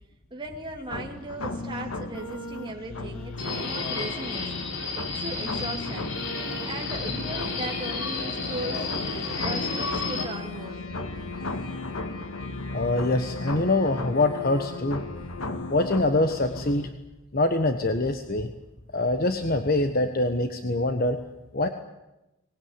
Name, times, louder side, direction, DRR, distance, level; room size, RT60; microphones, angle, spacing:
voice 1, 0.3-4.5 5.0-6.1 6.6-9.1 9.4-10.9 15.6-15.7, right 1 dB, 25° right, 1 dB, 2.5 m, -37 dB
sound 1, 0.9-16.9, left 2 dB, 85° left, 2.1 m, -35 dB
Subway metro underground, 3.4-10.2, left 4 dB, 65° left, 4.5 m, -32 dB
voice 2, 12.7-15.0 15.7-16.9 17.3-18.5 18.9-21.2 21.5-21.7, left 2 dB, 45° left, 7 dB, 1.3 m, -24 dB
23.5 x 20.0 x 9.8 m, 0.99 s
head